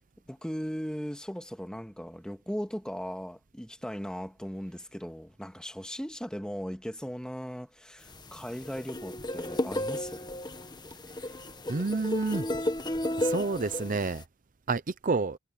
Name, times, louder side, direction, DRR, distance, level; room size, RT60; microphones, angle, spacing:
voice 1, 0.3-10.3, equal, 5° left, 1.8 m, -38 dB
Charango improv, 8.1-14.2, left 1 dB, 20° left, 1.4 m, -33 dB
voice 2, 11.7-12.5 13.2-14.2 14.7-15.4, right 3 dB, 45° right, 0.7 m, -29 dB
head